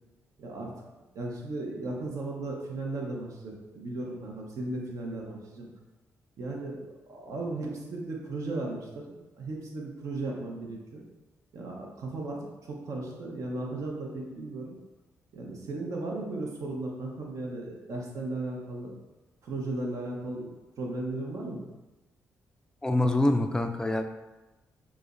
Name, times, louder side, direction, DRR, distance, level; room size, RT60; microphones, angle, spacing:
voice 1, 0.4-0.7 1.1-5.7 6.4-6.8 7.1-11.0 11.5-12.4 12.7-14.8 15.3-18.9 19.4-20.5 20.8-21.6, right 2 dB, 65° right, -1 dB, 0.8 m, -36 dB
voice 2, 22.8-24.0, left 1 dB, 10° left, 6 dB, 0.3 m, -25 dB
4.8 x 2.1 x 2.5 m, 1.1 s
cardioid pair, 70°, 6 cm